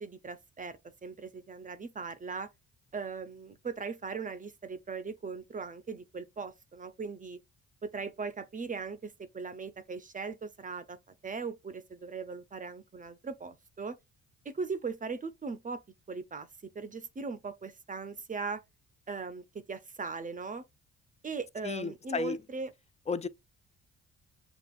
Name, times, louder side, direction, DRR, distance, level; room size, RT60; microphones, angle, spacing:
voice 1, 0.0-2.5 2.9-7.4 7.8-11.0 11.2-14.0 14.4-15.8 16.1-18.6 19.1-20.6 21.2-22.7, right 5 dB, 25° right, 0.5 m, -39 dB
voice 2, 21.6-22.4 23.1-23.3, left 5 dB, 25° left, 0.4 m, -33 dB
6.8 x 2.4 x 2.4 m
cardioid pair, 90°, 30 cm